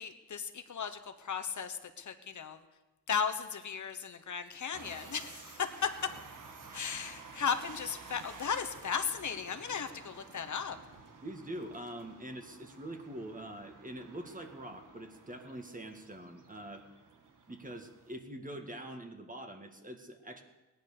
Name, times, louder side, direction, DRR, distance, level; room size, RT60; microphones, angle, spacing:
voice 1, 0.0-2.6 3.1-5.9 6.7-10.8, left 6 dB, 65° left, 8 dB, 1.2 m, -36 dB
sound 1, 4.7-18.2, right 4 dB, 70° right, 1.8 m, -52 dB
voice 2, 11.2-16.9 17.5-20.4, right 1 dB, 25° right, 5 dB, 1.9 m, -44 dB
17.5 x 10.5 x 6.8 m, 1.1 s
cardioid pair, 75°, 32 cm